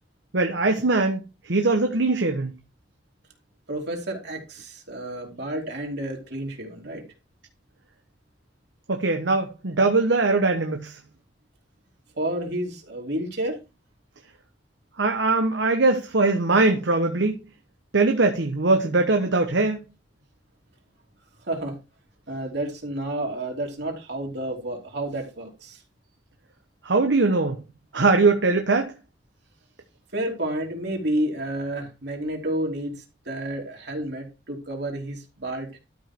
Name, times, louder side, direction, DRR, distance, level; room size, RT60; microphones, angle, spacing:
voice 1, 0.3-2.5 8.9-11.0 15.0-17.4 17.9-19.8 26.8-27.6 27.9-28.9, right 3 dB, 80° right, 1.2 m, -21 dB
voice 2, 3.7-7.0 12.1-13.5 21.4-21.8 22.3-25.8 30.1-35.8, right 1 dB, 65° right, 3.0 m, -30 dB
12.5 x 5.2 x 4.5 m
head